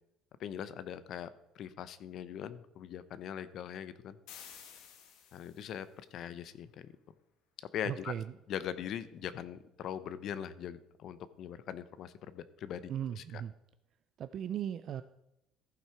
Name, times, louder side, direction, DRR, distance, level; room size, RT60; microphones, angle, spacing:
voice 1, 0.4-1.3 1.6-4.2 5.3-5.9 6.1-6.9 7.7-8.1 8.5-12.8 13.1-13.4, left 9 dB, 55° left, 15 dB, 0.6 m, -41 dB
sound 1, 4.3-5.8, left 8 dB, 75° left, 1.4 m, -52 dB
voice 2, 7.9-8.2 12.9-13.5 14.2-15.0, right 9 dB, 45° right, 11 dB, 0.3 m, -37 dB
14.5 x 5.8 x 4.5 m, 0.88 s
cardioid pair, 145°, 0 cm